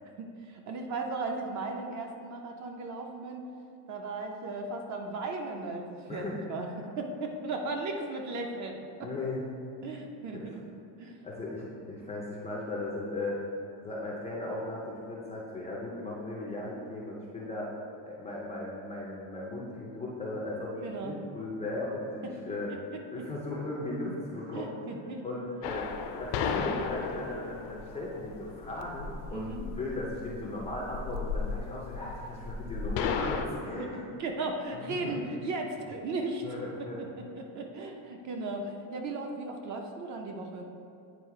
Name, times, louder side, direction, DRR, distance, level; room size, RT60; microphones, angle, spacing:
voice 1, 0.2-3.4 3.9-6.2 6.5-9.1 9.8-10.6 11.0-11.2 20.8-21.1 22.5-23.2 24.5-25.2 29.3-29.7 33.9-36.4 36.8-40.7, right 3 dB, 40° right, 3 dB, 0.5 m, -36 dB
voice 2, 6.1-6.4 9.0-9.4 10.3-10.6 11.2-13.4 13.8-17.7 18.1-22.7 23.1-24.8 25.2-25.9 26.2-34.1 34.8-35.1 36.4-37.0, left 2 dB, 15° left, -5 dB, 0.4 m, -37 dB
sound 1, 25.6-33.5, left 6 dB, 60° left, 0.6 m, -35 dB
9.1 x 3.2 x 4.6 m, 2.5 s
cardioid pair, 175°, 46 cm